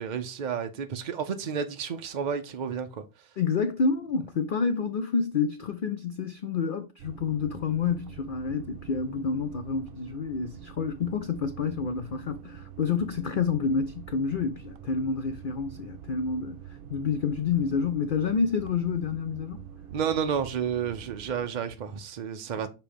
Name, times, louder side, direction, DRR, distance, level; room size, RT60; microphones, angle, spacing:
voice 1, 0.0-3.0 19.9-22.7, right 7 dB, 60° right, 0.4 m, -31 dB
voice 2, 3.4-16.6 16.9-19.7, left 5 dB, 80° left, 0.4 m, -28 dB
sound 1, 7.0-21.5, right 10 dB, 80° right, 1.0 m, -45 dB
6.8 x 3.0 x 5.0 m
omnidirectional pair, 1.5 m